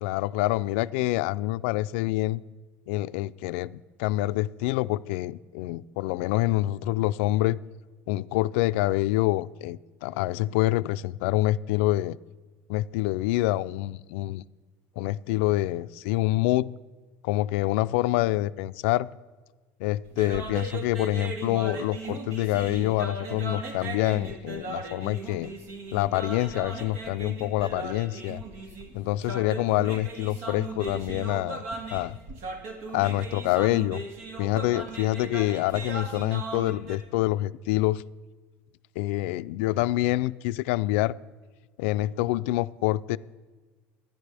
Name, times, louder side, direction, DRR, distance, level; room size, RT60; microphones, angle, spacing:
voice 1, 0.0-2.4 2.9-7.6 8.1-12.2 12.7-14.4 15.0-16.7 17.2-19.1 19.8-25.5 25.9-28.4 28.9-31.6 31.9-32.2 32.9-34.0 34.4-38.0 39.0-41.1 41.8-43.2, left 17 dB, 85° left, 15 dB, 0.4 m, -26 dB
sound 1, 20.1-37.0, right 3 dB, 75° right, 2.1 m, -38 dB
25.5 x 10.5 x 3.4 m, 1.4 s
cardioid pair, 155°, 6 cm